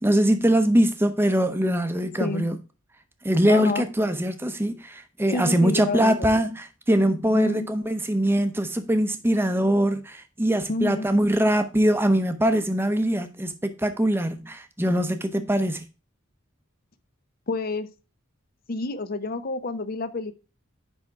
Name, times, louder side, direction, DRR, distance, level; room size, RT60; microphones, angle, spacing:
voice 1, 0.0-2.6 3.2-15.8, right 1 dB, 10° right, 0.7 m, -22 dB
voice 2, 3.5-3.9 5.3-6.1 7.3-7.7 10.7-11.1 17.5-17.9 18.7-20.3, left 2 dB, 45° left, 0.6 m, -28 dB
9.8 x 3.6 x 4.7 m
head